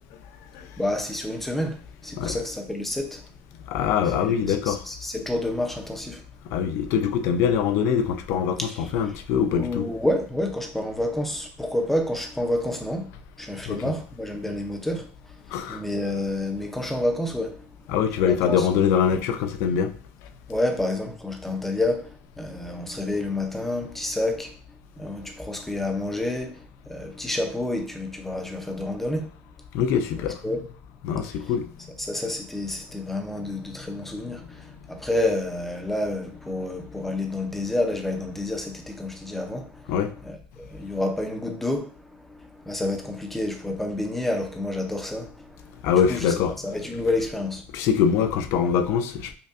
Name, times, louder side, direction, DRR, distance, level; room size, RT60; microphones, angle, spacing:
voice 1, 0.8-3.2 4.2-6.2 8.6-8.9 9.5-13.1 13.4-15.1 15.5-17.7 18.2-18.9 20.5-24.6 25.0-29.3 30.4-30.6 31.4-31.5 32.0-39.9 40.2-46.3 46.6-47.6, left 1 dB, 5° left, 0.5 m, -29 dB
voice 2, 3.7-4.8 6.5-9.9 13.6-13.8 15.5-15.8 17.9-19.9 29.7-30.4 31.0-31.9 39.9-40.1 45.8-46.5 47.7-49.3, left 7 dB, 60° left, 0.4 m, -23 dB
5.1 x 2.2 x 2.4 m
cardioid pair, 155°, 5 cm